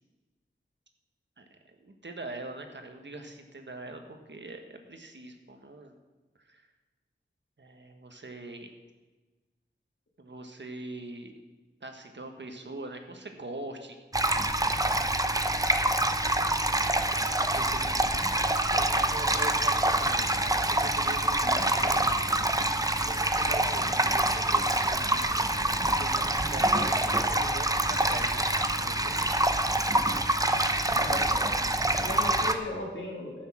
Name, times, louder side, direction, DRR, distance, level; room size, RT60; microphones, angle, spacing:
voice 1, 1.8-6.0 6.5-6.6 7.6-8.7 10.2-11.3 11.8-15.0 16.4-16.7 17.1-18.2 18.7-29.2, right 2 dB, 70° right, 5 dB, 1.4 m, -43 dB
sound 1, 14.1-32.5, right 1 dB, 20° right, 0.8 m, -26 dB
voice 2, 30.8-31.5 31.9-33.5, left 1 dB, 80° left, -4 dB, 2.4 m, -36 dB
14.0 x 6.5 x 6.2 m, 1.2 s
wide cardioid pair, 60°, 19 cm